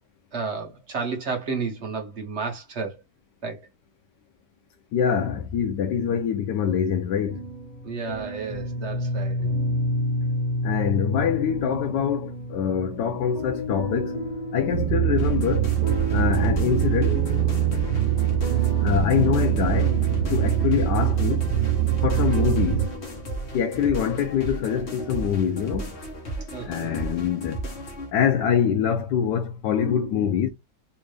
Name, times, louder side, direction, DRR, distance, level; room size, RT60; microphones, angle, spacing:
voice 1, 0.3-3.0 3.4-3.7 7.8-9.5 26.5-27.0, right 4 dB, 45° right, 1.1 m, -32 dB
voice 2, 4.9-7.5 10.6-14.2 14.5-15.7 16.1-17.2 18.8-20.0 20.3-21.5 22.0-22.9 23.5-26.0 26.6-27.6 28.1-30.5, left 8 dB, 80° left, 1.2 m, -24 dB
sound 1, 7.3-23.2, equal, 25° left, 1.4 m, -31 dB
sound 2, 14.7-22.9, right 13 dB, 90° right, 1.3 m, -23 dB
sound 3, 15.2-28.1, right 1 dB, 40° left, 1.3 m, -35 dB
3.5 x 2.7 x 3.2 m
omnidirectional pair, 1.9 m